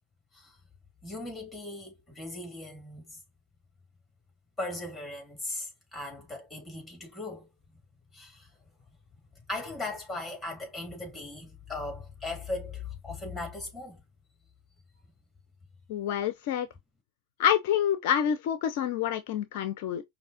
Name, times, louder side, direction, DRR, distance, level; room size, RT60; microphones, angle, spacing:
voice 1, 1.0-3.2 4.6-7.5 8.1-8.5 9.5-14.0, left 2 dB, 5° left, 2.9 m, -38 dB
voice 2, 15.9-16.7 17.4-20.0, left 9 dB, 50° left, 0.5 m, -27 dB
5.4 x 2.8 x 2.8 m
figure-of-eight pair, 90°, 0 cm